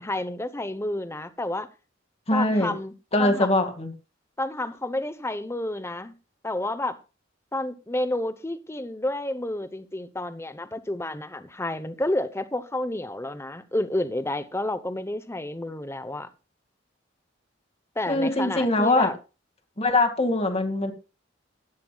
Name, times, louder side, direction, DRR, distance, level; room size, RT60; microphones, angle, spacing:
voice 1, 0.0-1.7 2.3-2.9 3.2-3.6 4.4-6.1 6.4-7.0 7.5-16.3 18.0-19.1, left 1 dB, 15° left, 0.9 m, -30 dB
voice 2, 2.3-2.7 3.1-3.9 18.1-19.1 19.8-20.9, left 2 dB, 30° left, 2.2 m, -22 dB
16.5 x 12.0 x 2.4 m
head